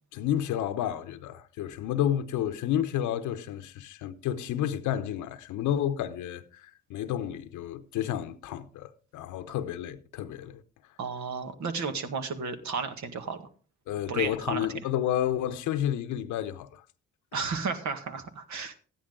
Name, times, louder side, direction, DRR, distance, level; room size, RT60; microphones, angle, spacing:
voice 1, 0.1-10.6 13.9-16.8, left 11 dB, 85° left, 0.8 m, -31 dB
voice 2, 11.0-13.5 14.1-14.7 17.3-18.7, right 5 dB, 70° right, 1.9 m, -33 dB
14.0 x 10.0 x 3.8 m
supercardioid pair, 60°, 29 cm